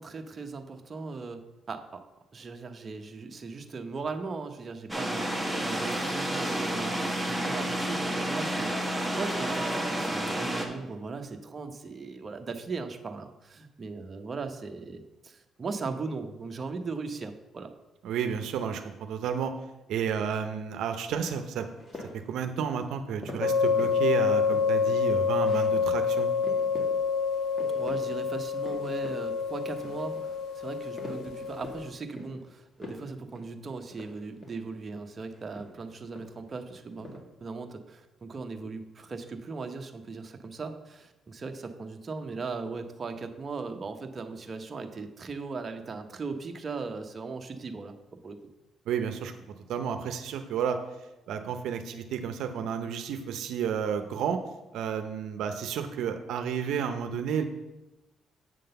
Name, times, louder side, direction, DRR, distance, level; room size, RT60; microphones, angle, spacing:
voice 1, 0.0-2.0 2.3-17.7 27.7-48.0 48.2-48.4, right 4 dB, 40° right, 6 dB, 0.7 m, -38 dB
sound 1, 4.9-10.7, right 1 dB, ahead, 1.2 m, -30 dB
voice 2, 18.0-19.5 19.9-21.7 22.3-26.3 48.9-49.3 49.7-50.8 51.3-54.4 54.7-57.4, right 7 dB, 80° right, 7 dB, 0.6 m, -31 dB
sound 2, 21.8-22.3 23.2-24.0 24.3-25.0 25.4-25.8 26.1-26.2 26.4-26.9 27.3-28.0 28.3-29.2 29.6-30.3 30.7-31.8 32.1-32.4 32.8-33.1 33.3-33.5 33.9-34.7 35.3-36.5 36.8-37.2, left 2 dB, 30° left, 1.8 m, -44 dB
sound 3, 23.4-31.9, left 5 dB, 80° left, 1.0 m, -27 dB
7.6 x 3.8 x 6.6 m, 1.0 s
cardioid pair, 90°, 0 cm